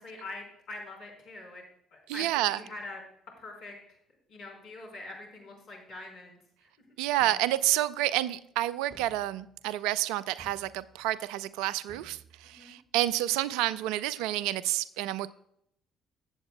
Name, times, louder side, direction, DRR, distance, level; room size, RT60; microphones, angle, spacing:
voice 1, 0.0-1.6 1.9-3.0 3.4-4.0 4.3-6.7 12.4-12.7, left 2 dB, 60° left, -1 dB, 3.9 m, -44 dB
voice 2, 2.1-2.6 7.0-15.3, right 15 dB, 70° right, 17 dB, 0.4 m, -29 dB
sound 1, 7.2-7.9 8.9-9.7 10.4-11.2 11.9-12.9, right 3 dB, 40° right, 1.1 m, -55 dB
15.0 x 7.9 x 2.2 m, 0.71 s
hypercardioid pair, 50°, 0 cm